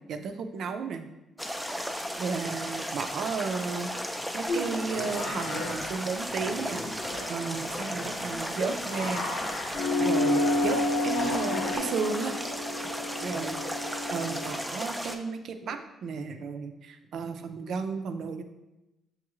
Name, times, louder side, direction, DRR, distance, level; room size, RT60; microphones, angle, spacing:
voice 1, 0.1-1.1 2.2-3.9 4.3-6.8 7.3-9.3 10.0-12.3 13.2-13.6 14.1-18.4, right 5 dB, 70° right, 7 dB, 0.4 m, -33 dB
sound 1, 1.4-15.2, equal, ahead, 0.4 m, -35 dB
sound 2, 4.5-11.8, left 1 dB, 85° left, 1.0 m, -37 dB
sound 3, 9.7-14.5, left 1 dB, 65° left, 0.5 m, -29 dB
7.0 x 2.4 x 3.0 m, 0.97 s
cardioid pair, 90°, 0 cm